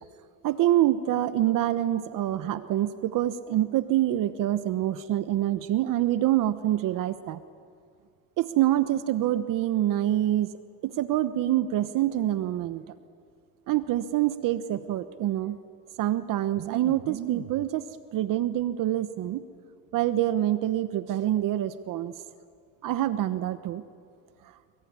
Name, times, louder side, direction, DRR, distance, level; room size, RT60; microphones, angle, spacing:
voice 1, 0.4-7.4 8.4-10.5 10.8-12.8 13.7-15.6 16.0-19.4 19.9-22.1 22.8-23.8, right 13 dB, 65° right, 12 dB, 1.1 m, -26 dB
26.5 x 23.5 x 9.6 m, 2.3 s
cardioid pair, 100°, 35 cm